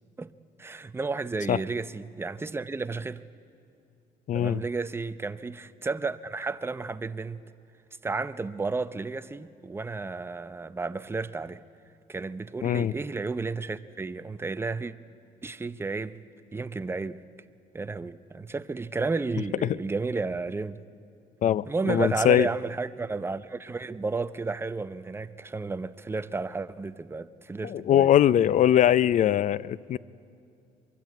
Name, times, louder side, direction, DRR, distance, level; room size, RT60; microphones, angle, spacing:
voice 1, 0.6-3.2 4.3-7.4 8.0-11.6 12.1-14.9 15.4-16.2 16.5-17.2 17.7-20.8 21.7-28.1, right 3 dB, 15° right, 0.6 m, -32 dB
voice 2, 4.3-4.6 12.6-12.9 19.6-19.8 21.4-22.5 27.6-30.0, left 11 dB, 45° left, 0.5 m, -22 dB
23.0 x 23.0 x 8.3 m
cardioid pair, 110°, 17 cm